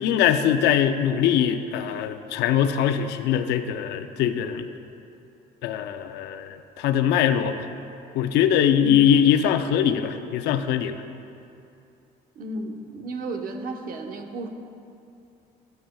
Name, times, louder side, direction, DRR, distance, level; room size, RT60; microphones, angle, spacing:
voice 1, 0.0-4.6 5.6-7.7 8.1-11.0, left 9 dB, 85° left, 9 dB, 0.6 m, -22 dB
voice 2, 12.4-14.5, right 2 dB, 55° right, 4 dB, 1.1 m, -33 dB
17.5 x 9.2 x 2.3 m, 2.6 s
cardioid pair, 110°, 17 cm